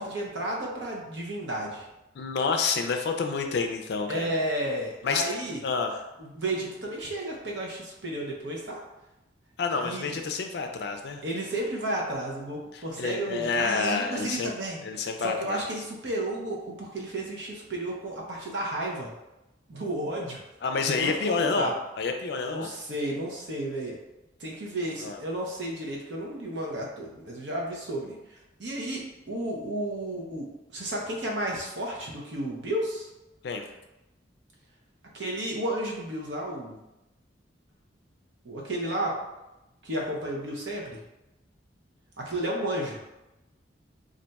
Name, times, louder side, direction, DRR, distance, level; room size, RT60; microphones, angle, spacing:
voice 1, 0.0-1.8 4.1-5.6 6.2-8.8 9.8-10.2 11.2-19.1 19.7-20.4 20.8-21.7 22.5-24.0 24.4-30.5 30.7-33.1 35.1-36.8 38.4-39.1 39.8-41.0 42.2-43.0, right 1 dB, 70° right, -2 dB, 0.7 m, -32 dB
voice 2, 2.2-4.3 5.0-5.3 5.6-6.0 9.6-11.2 12.7-14.5 14.8-15.7 20.6-21.7 22.0-22.7 25.0-25.2 33.4-33.7, left 4 dB, 60° left, 5 dB, 0.4 m, -28 dB
2.5 x 2.2 x 4.0 m, 0.95 s
head